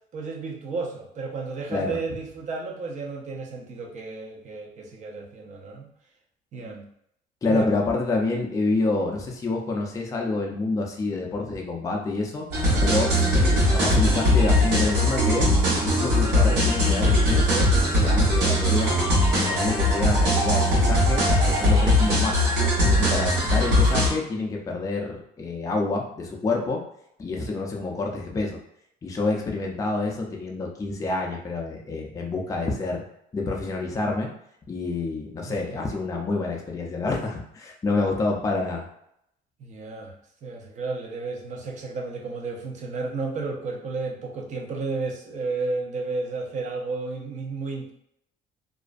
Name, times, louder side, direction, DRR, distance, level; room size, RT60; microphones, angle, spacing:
voice 1, 0.1-5.9 6.5-6.9 7.5-7.7 35.5-35.9 39.6-40.1 40.4-47.9, right 3 dB, 45° right, 1 dB, 0.6 m, -32 dB
voice 2, 7.4-12.5 12.8-15.5 15.8-19.0 19.4-22.4 22.8-26.8 27.2-28.6 29.0-33.0 33.3-34.3 34.7-38.9, left 3 dB, 20° left, 0 dB, 0.4 m, -28 dB
sound 1, 12.5-24.1, left 1 dB, 85° right, 1.1 m, -20 dB
2.4 x 2.1 x 2.4 m, 0.74 s
cardioid pair, 110°, 17 cm